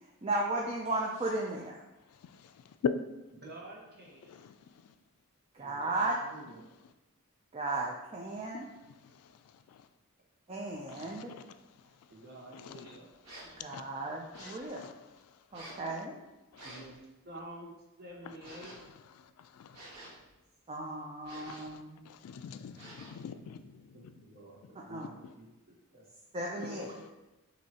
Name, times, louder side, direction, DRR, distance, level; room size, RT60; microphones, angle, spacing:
voice 1, 0.2-1.8 5.5-6.2 7.5-8.7 10.5-11.3 13.6-14.9 15.5-16.2 20.7-22.0 24.9-25.1 26.3-26.9, right 2 dB, 25° right, -1 dB, 0.4 m, -35 dB
voice 2, 3.4-4.4 5.6-6.6 12.1-13.1 16.6-17.0 17.2-17.7 18.0-18.8 23.9-24.6 24.8-26.1 26.6-27.0, right 1 dB, 45° right, -3 dB, 1.1 m, -49 dB
voice 3, 10.9-11.2 12.6-12.7 13.7-13.8 14.4-14.9 15.7-15.8 19.6-19.7 21.5-21.7 22.1-23.7 25.0-25.1, left 7 dB, 85° left, 11 dB, 0.3 m, -47 dB
sound 1, 13.2-13.6 14.3-14.7 15.5-15.9 16.5-16.9 18.4-18.9 19.7-20.3 21.2-21.8 22.7-23.3, right 1 dB, 90° right, 1.4 m, -50 dB
6.0 x 2.7 x 2.8 m, 0.98 s
head